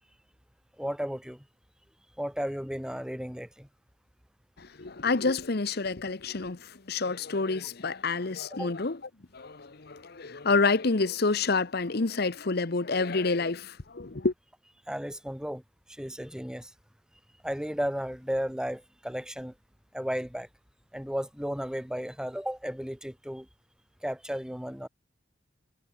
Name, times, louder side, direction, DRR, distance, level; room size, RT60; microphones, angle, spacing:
voice 1, 0.8-1.4 2.2-3.7 8.6-8.7 14.9-15.6 15.9-16.7 17.4-19.5 19.9-20.5 20.9-23.5 24.0-24.9, equal, 5° right, 2.1 m, -34 dB
voice 2, 4.6-9.0 9.3-14.3, left 3 dB, 55° left, 1.0 m, -28 dB
head